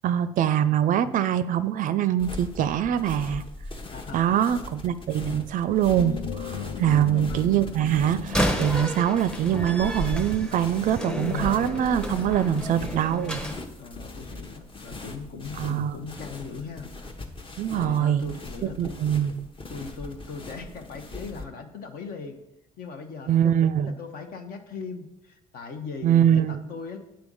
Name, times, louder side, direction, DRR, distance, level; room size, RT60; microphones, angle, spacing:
voice 1, 0.0-3.4 4.1-13.4 15.6-15.9 17.6-18.3 18.8-19.5 23.3-24.0 26.0-26.6, right 10 dB, 50° right, 14 dB, 0.4 m, -23 dB
sound 1, 2.2-21.4, left 3 dB, 30° left, 1.0 m, -40 dB
voice 2, 3.9-4.7 6.9-7.3 13.8-16.9 17.7-19.0 19.7-22.4 22.8-27.0, left 4 dB, 60° left, 5 dB, 1.0 m, -39 dB
sound 2, 6.0-13.5, left 7 dB, 80° left, 0.6 m, -38 dB
Slam, 8.2-13.6, equal, 5° left, 0.8 m, -31 dB
8.9 x 3.5 x 5.4 m, 0.91 s
hypercardioid pair, 60°, 17 cm